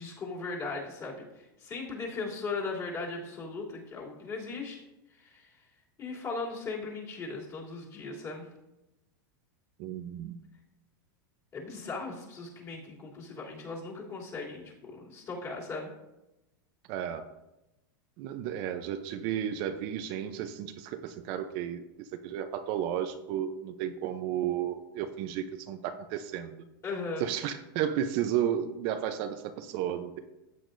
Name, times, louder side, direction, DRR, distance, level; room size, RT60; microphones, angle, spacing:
voice 1, 0.0-4.8 5.1-5.6 6.0-8.5 11.5-15.9 26.8-27.3, left 3 dB, 25° left, -3 dB, 3.1 m, -38 dB
voice 2, 9.8-10.4 16.9-17.2 18.2-26.5 27.2-30.2, right 10 dB, 50° right, 8 dB, 0.7 m, -33 dB
14.0 x 8.7 x 2.6 m, 0.97 s
supercardioid pair, 135°, 12 cm